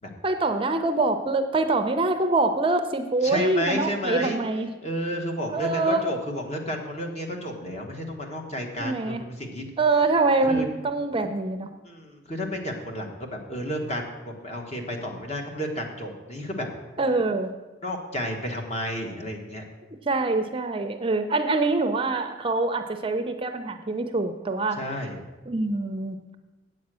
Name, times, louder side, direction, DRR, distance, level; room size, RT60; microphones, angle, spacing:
voice 1, 0.2-4.7 5.5-6.0 8.8-9.2 9.8-11.7 17.0-17.5 20.1-24.8 25.5-26.2, right 3 dB, 30° right, 7 dB, 0.5 m, -24 dB
voice 2, 3.2-4.4 4.8-9.6 10.4-10.6 11.8-16.7 17.8-19.6 24.7-25.2, equal, 35° left, 2 dB, 1.5 m, -31 dB
8.5 x 7.7 x 6.2 m, 1.2 s
head